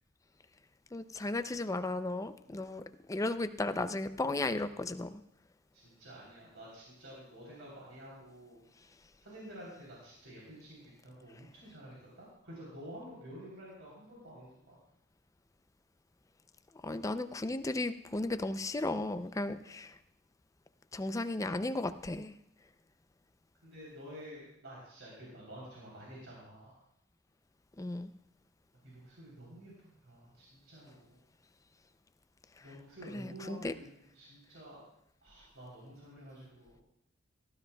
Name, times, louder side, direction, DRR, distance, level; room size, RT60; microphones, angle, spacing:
voice 1, 0.9-2.8 3.1-5.2 16.8-19.9 20.9-22.3 27.8-28.1 32.6-32.7 33.1-33.7, left 2 dB, 15° left, 11 dB, 0.4 m, -35 dB
voice 2, 5.7-8.6 9.2-14.8 23.6-26.7 28.8-31.2 32.6-34.9 35.2-36.8, equal, 80° right, -5 dB, 3.4 m, -50 dB
18.0 x 12.5 x 2.3 m, 0.75 s
head